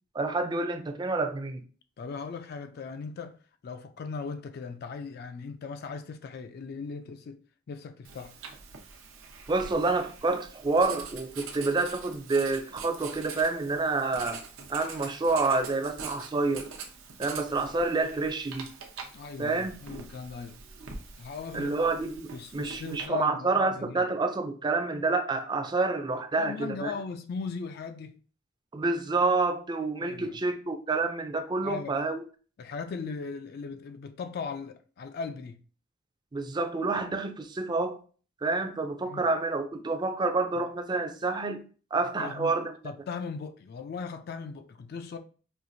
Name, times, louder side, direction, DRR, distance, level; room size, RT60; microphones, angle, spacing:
voice 1, 0.1-1.6 9.5-14.4 14.7-16.7 17.2-18.7 19.4-19.8 21.5-26.9 28.7-32.2 36.3-38.0 38.4-41.6 41.9-42.7, right 3 dB, 20° right, 0.4 m, -28 dB
voice 2, 2.0-7.4 7.7-8.4 14.1-14.3 19.1-20.6 21.2-21.8 22.3-24.1 26.4-28.2 30.0-30.4 31.6-32.0 32.6-35.6 39.0-39.3 40.6-40.7 42.2-42.5 42.8-45.2, left 5 dB, 50° left, 0.3 m, -38 dB
Writing, 8.0-23.1, right 5 dB, 90° right, 0.7 m, -44 dB
4.4 x 2.4 x 2.6 m
head